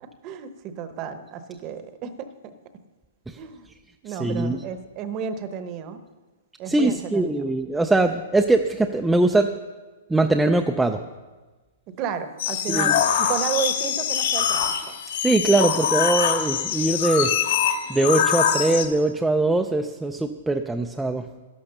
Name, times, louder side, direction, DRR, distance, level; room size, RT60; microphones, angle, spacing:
voice 1, 0.0-2.3 3.4-3.7 4.0-6.0 6.6-7.3 12.0-14.8, right 7 dB, 25° right, 10 dB, 0.9 m, -32 dB
voice 2, 4.1-4.6 6.7-9.5 10.1-11.0 12.7-12.9 15.2-17.3 17.9-21.2, right 2 dB, 5° right, 4 dB, 0.4 m, -21 dB
sound 1, 12.4-18.9, left 8 dB, 50° left, 1.4 m, -23 dB
12.0 x 11.5 x 6.6 m, 1.3 s
hypercardioid pair, 175°, 0 cm